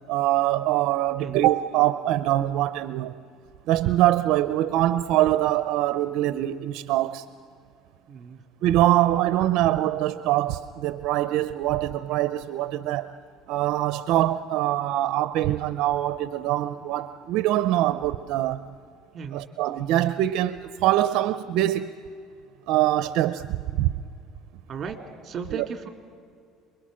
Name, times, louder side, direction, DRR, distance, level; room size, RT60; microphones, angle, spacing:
voice 1, 0.1-3.1 3.7-7.2 8.6-13.1 13.5-18.6 19.3-21.9 22.7-23.9 25.5-25.7, right 14 dB, 65° right, 0.6 m, -23 dB
voice 2, 8.1-8.4 19.1-19.4 24.7-25.0 25.2-25.9, right 6 dB, 35° right, 2.5 m, -35 dB
27.5 x 22.0 x 6.3 m
cardioid pair, 130°, 0 cm